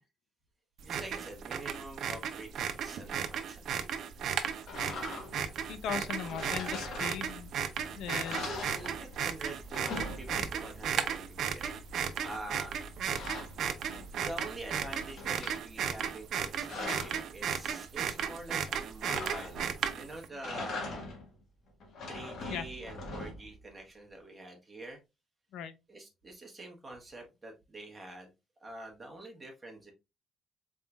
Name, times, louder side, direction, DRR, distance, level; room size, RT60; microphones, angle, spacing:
voice 1, 0.8-3.6 8.3-11.8 12.2-12.7 14.1-21.1 22.1-25.0 25.9-28.3 28.6-29.9, right 2 dB, 10° right, 1.1 m, -46 dB
sound 1, 0.8-20.3, right 8 dB, 60° right, 0.5 m, -35 dB
sound 2, 4.7-5.5 6.2-7.5 7.8-7.9 8.2-9.3 9.6-10.8 12.5-14.3 14.7-15.6 16.3-17.3 19.0-19.8 20.3-21.3 21.8-23.6, left 2 dB, 60° left, 1.2 m, -41 dB
sound 3, 5.3-15.1, left 1 dB, 5° left, 1.7 m, -53 dB
voice 2, 5.7-7.5 7.9-8.6 22.5-22.7 25.5-25.7, left 8 dB, 80° left, 0.4 m, -38 dB
4.0 x 3.6 x 2.2 m
cardioid pair, 150°, 0 cm